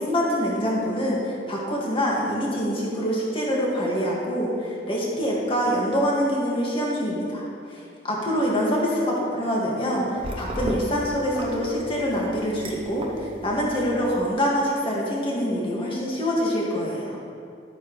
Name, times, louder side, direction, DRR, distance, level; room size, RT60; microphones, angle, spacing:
voice 1, 0.0-17.2, equal, 30° left, -4 dB, 1.9 m, -25 dB
sound 1, 10.2-14.2, equal, 30° right, 0.9 m, -35 dB
12.0 x 8.9 x 3.2 m, 2.4 s
head